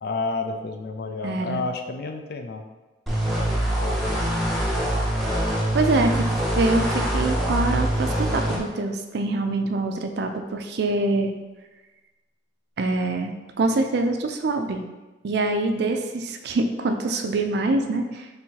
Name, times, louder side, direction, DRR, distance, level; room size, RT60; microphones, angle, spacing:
voice 1, 0.0-2.6 3.8-4.3, left 3 dB, 55° left, 5 dB, 0.4 m, -30 dB
voice 2, 1.2-1.6 5.7-6.3 6.6-11.3 12.8-13.3 13.6-14.8 15.2-18.3, right 2 dB, 60° right, 6 dB, 0.4 m, -24 dB
sound 1, 3.1-8.6, right 1 dB, ahead, 0.6 m, -24 dB
3.3 x 2.8 x 4.5 m, 1.2 s
head